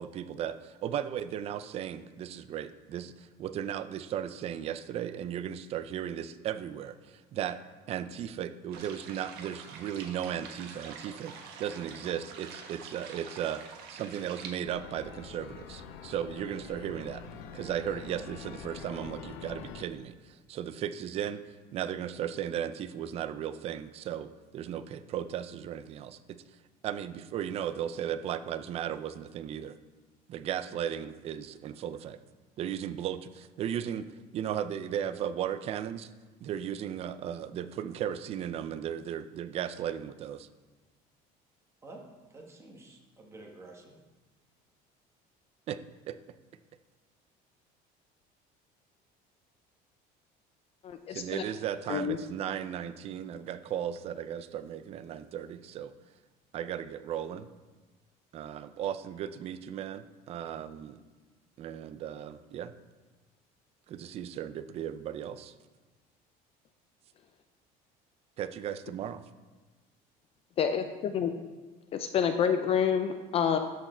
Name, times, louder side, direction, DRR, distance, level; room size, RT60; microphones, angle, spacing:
voice 1, 0.0-7.6 7.9-17.2 17.5-21.4 21.7-26.4 26.8-29.8 30.3-32.2 32.6-36.1 36.4-40.5 45.7-45.8 46.1-46.2 51.1-55.9 56.5-57.5 58.3-61.0 61.6-62.7 63.9-65.5 68.4-69.2, right 9 dB, 35° right, 12 dB, 0.4 m, -36 dB
sound 1, 8.7-14.5, right 6 dB, 70° right, 1.4 m, -46 dB
sound 2, 14.6-19.9, left 7 dB, 85° left, 0.8 m, -45 dB
voice 2, 41.8-44.0, right 2 dB, 15° right, 0 dB, 1.3 m, -50 dB
voice 3, 50.8-51.4 51.9-52.2 70.6-71.3 71.9-73.6, left 7 dB, 35° left, 7 dB, 0.4 m, -28 dB
13.0 x 4.7 x 4.4 m, 1.3 s
cardioid pair, 155°, 17 cm